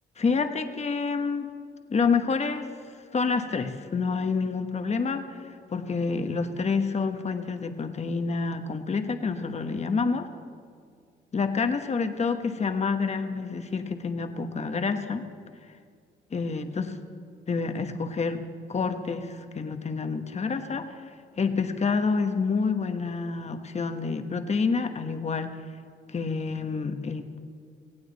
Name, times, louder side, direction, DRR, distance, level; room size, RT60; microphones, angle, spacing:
voice 1, 0.2-1.5 1.9-2.7 3.1-5.4 5.7-10.3 11.3-15.2 16.3-17.0 17.5-20.9 21.4-25.5 26.1-27.4, left 4 dB, 35° left, 7 dB, 1.2 m, -28 dB
18.5 x 16.0 x 4.1 m, 2.1 s
cardioid pair, 90°, 20 cm